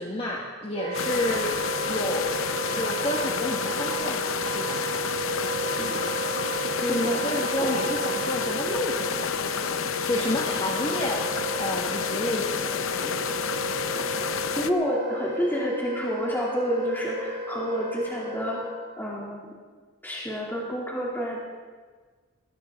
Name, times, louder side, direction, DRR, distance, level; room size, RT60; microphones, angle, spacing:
voice 1, 0.0-1.5 1.9-4.8 6.8-11.2 11.6-13.3, left 1 dB, 30° left, -2 dB, 1.5 m, -31 dB
Wind instrument woodwind instrument, 0.7-18.9, right 2 dB, 50° right, 2.7 m, -33 dB
sound 1, 0.9-14.7, left 7 dB, 75° left, 0.7 m, -30 dB
voice 2, 6.8-7.8 14.6-18.6 19.0-19.5 20.0-21.4, equal, 10° left, -5 dB, 2.7 m, -29 dB
19.5 x 18.0 x 3.7 m, 1.5 s
head